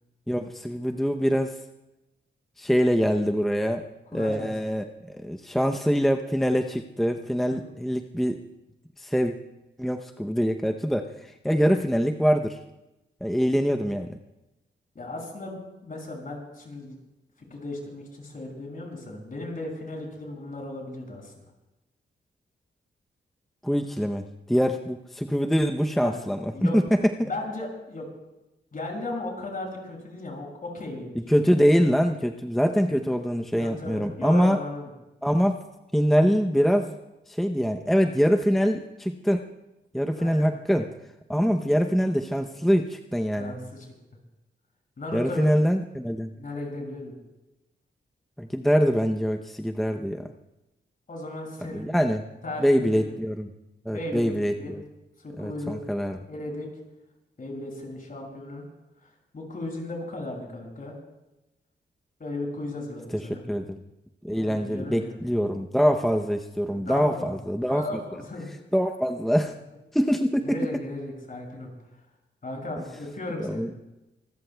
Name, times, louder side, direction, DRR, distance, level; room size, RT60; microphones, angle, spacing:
voice 1, 0.3-1.6 2.6-3.8 4.1-8.4 9.0-9.3 9.8-12.6 13.2-14.2 23.6-27.3 31.1-34.6 35.2-35.6 35.9-36.9 37.3-39.4 39.9-40.9 41.3-43.6 45.1-46.3 48.4-50.3 51.7-52.2 52.6-53.5 53.9-54.8 55.4-56.2 63.2-63.8 64.2-68.0 68.7-69.5 69.9-70.6 73.4-73.7, equal, ahead, 4 dB, 0.7 m, -24 dB
voice 2, 4.1-4.5 7.5-7.6 14.9-15.6 15.8-17.0 17.5-21.3 26.0-26.1 26.5-26.8 27.2-28.1 28.7-31.2 33.6-34.9 40.2-40.5 43.4-43.9 45.0-45.6 46.4-47.1 51.1-51.9 52.4-53.1 53.9-54.8 55.2-55.8 56.3-56.7 57.4-58.6 59.0-60.9 62.2-63.4 64.3-65.2 66.7-68.5 70.4-71.7 72.4-73.7, left 2 dB, 45° left, 0 dB, 6.4 m, -36 dB
26.0 x 20.5 x 2.3 m, 0.97 s
wide cardioid pair, 100°, 19 cm